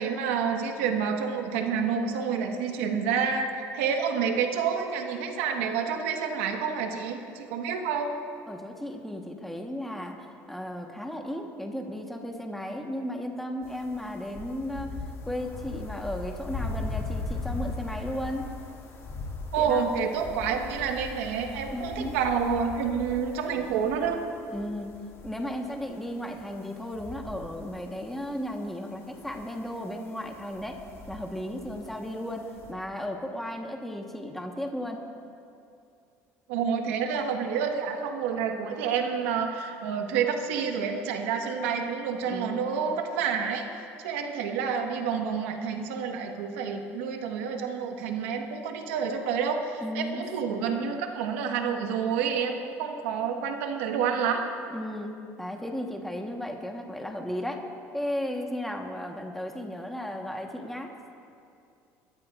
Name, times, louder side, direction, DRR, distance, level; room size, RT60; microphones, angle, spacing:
voice 1, 0.0-8.1 19.5-24.2 36.5-43.6 44.0-54.5, right 6 dB, 90° right, 3 dB, 1.4 m, -28 dB
voice 2, 8.5-15.0 15.3-18.5 19.6-19.9 21.7-22.2 24.5-24.9 25.2-30.8 31.1-35.0 42.2-42.8 49.8-50.2 54.7-55.1 55.4-57.6 57.9-60.9, left 1 dB, 5° left, 2 dB, 1.3 m, -35 dB
sound 1, 13.6-32.7, left 3 dB, 40° left, 2.2 m, -40 dB
23.0 x 13.5 x 2.5 m, 2.5 s
supercardioid pair, 95°, 7 cm